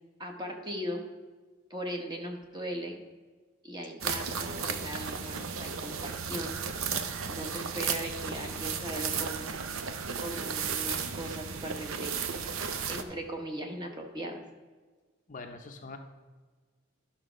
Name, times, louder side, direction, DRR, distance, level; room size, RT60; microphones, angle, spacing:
voice 1, 0.2-1.0 1.7-3.0 3.6-6.6 7.3-9.5 10.2-12.4 12.9-14.5, equal, 20° right, 3 dB, 1.0 m, -38 dB
sound 1, 4.0-13.0, right 6 dB, 70° right, 0.7 m, -34 dB
voice 2, 15.3-16.0, left 3 dB, 35° left, 5 dB, 0.6 m, -43 dB
11.5 x 5.9 x 5.1 m, 1.4 s
head